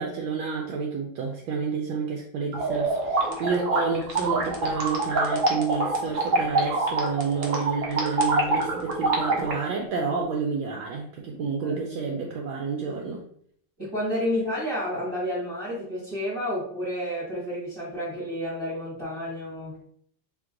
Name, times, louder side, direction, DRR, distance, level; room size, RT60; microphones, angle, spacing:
voice 1, 0.0-13.2, right 5 dB, 75° right, 0 dB, 1.3 m, -29 dB
sound 1, 2.5-9.5, right 2 dB, 60° right, 0.8 m, -25 dB
voice 2, 11.3-11.8 13.8-19.8, equal, 15° right, -10 dB, 1.2 m, -30 dB
3.7 x 2.9 x 3.7 m, 0.62 s
omnidirectional pair, 2.4 m